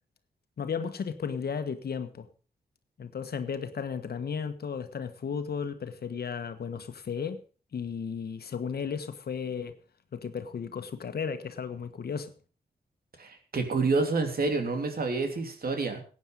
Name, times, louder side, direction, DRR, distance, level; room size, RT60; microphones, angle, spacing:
voice 1, 0.6-2.3 3.0-7.4 7.7-9.8 10.1-12.3, left 6 dB, 70° left, 1.4 m, -34 dB
voice 2, 13.2-16.0, right 3 dB, 65° right, 3.1 m, -28 dB
15.5 x 9.2 x 5.3 m
cardioid pair, 60°, 17 cm